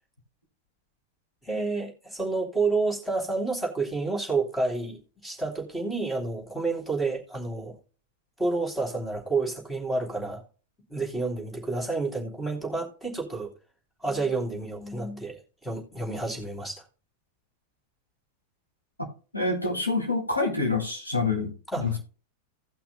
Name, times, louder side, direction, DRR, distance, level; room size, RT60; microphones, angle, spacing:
voice 1, 1.4-7.7 8.4-10.4 10.9-13.5 14.0-16.8 21.7-22.0, right 3 dB, 5° left, 3.0 m, -29 dB
voice 2, 19.3-22.0, left 3 dB, 85° left, 3.0 m, -27 dB
17.5 x 5.9 x 2.2 m
figure-of-eight pair, 90°, 0 cm